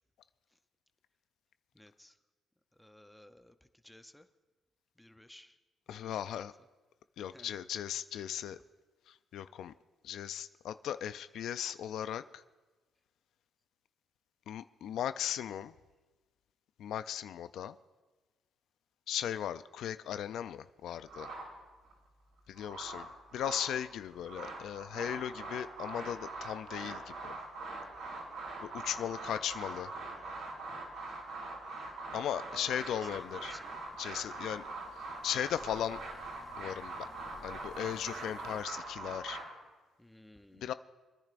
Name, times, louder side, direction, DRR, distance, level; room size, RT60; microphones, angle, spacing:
voice 1, 1.7-2.1 2.8-3.5 3.8-4.3 5.0-5.5 5.9-6.5 7.3-7.5 29.0-29.1 30.0-30.4 32.5-33.8 40.0-40.7, left 1 dB, 5° left, 9 dB, 0.6 m, -56 dB
voice 2, 5.9-6.5 7.2-8.6 9.1-9.7 10.0-12.4 14.5-15.7 16.8-17.8 19.1-21.3 22.5-27.3 28.6-29.9 32.1-33.5 34.0-34.7 34.9-36.0 36.6-37.1 37.4-39.4 40.6-40.7, left 10 dB, 75° left, 13 dB, 0.3 m, -37 dB
sound 1, 21.1-21.9 22.4-23.8 24.1-39.4, right 3 dB, 75° right, 5.2 m, -43 dB
sound 2, 33.0-38.6, left 4 dB, 50° left, 3.2 m, -57 dB
26.0 x 10.5 x 2.5 m, 1.2 s
cardioid pair, 90°, 0 cm